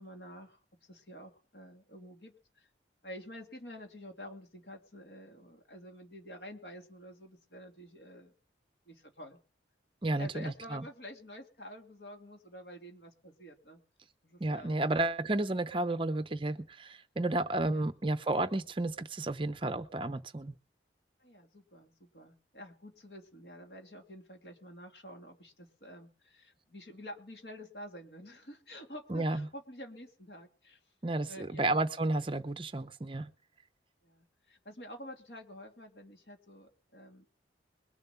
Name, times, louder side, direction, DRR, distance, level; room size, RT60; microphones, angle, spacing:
voice 1, 0.0-2.7 3.0-8.3 8.9-9.4 10.2-13.8 14.2-14.8 17.7-17.9 21.2-30.8 31.3-31.7 34.0-37.3, equal, 60° left, 2.6 m, -49 dB
voice 2, 10.0-10.8 14.4-20.5 29.1-29.5 31.0-33.3, right 2 dB, 30° right, 0.6 m, -32 dB
21.5 x 7.3 x 5.7 m
head